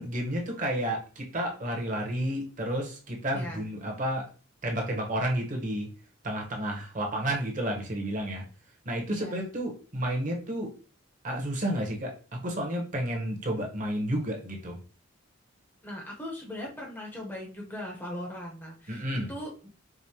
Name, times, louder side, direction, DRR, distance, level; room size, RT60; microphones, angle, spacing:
voice 1, 0.0-4.3 4.6-5.9 6.2-8.4 8.8-10.7 11.2-14.8 18.9-19.3, right 1 dB, 40° right, 1 dB, 0.8 m, -31 dB
voice 2, 3.3-3.7 9.1-9.4 15.8-19.7, left 1 dB, 10° left, -2 dB, 0.7 m, -39 dB
4.8 x 2.0 x 2.8 m, 0.37 s
head